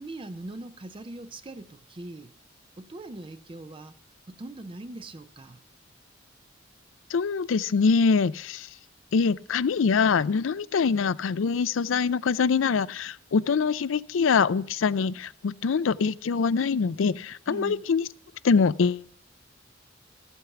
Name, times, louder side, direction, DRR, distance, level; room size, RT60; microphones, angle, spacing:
voice 1, 0.0-2.4 2.8-4.0 4.3-5.6 17.5-17.9, right 2 dB, 25° right, 0.5 m, -41 dB
voice 2, 7.1-8.7 9.1-18.1 18.4-19.1, left 5 dB, 85° left, 0.4 m, -24 dB
14.0 x 8.1 x 5.8 m
head